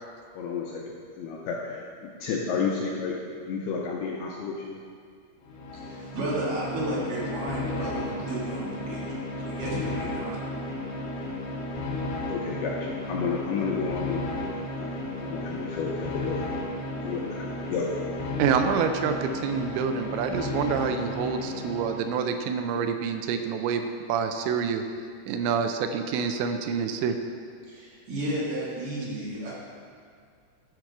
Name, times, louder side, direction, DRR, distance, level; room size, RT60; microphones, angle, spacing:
voice 1, 0.3-0.8 1.2-4.8 12.3-14.2 14.5-16.5 17.0-17.4 17.7-17.9, left 5 dB, 85° left, -2 dB, 2.3 m, -31 dB
sound 1, 5.4-22.3, left 1 dB, 65° left, 3.2 m, -33 dB
voice 2, 5.7-9.2 9.4-10.5 27.7-29.5, right 1 dB, 55° right, -6 dB, 2.9 m, -33 dB
voice 3, 18.4-24.8 25.3-27.2, right 6 dB, 85° right, 6 dB, 2.9 m, -27 dB
11.5 x 6.2 x 4.6 m, 2.2 s
omnidirectional pair, 5.2 m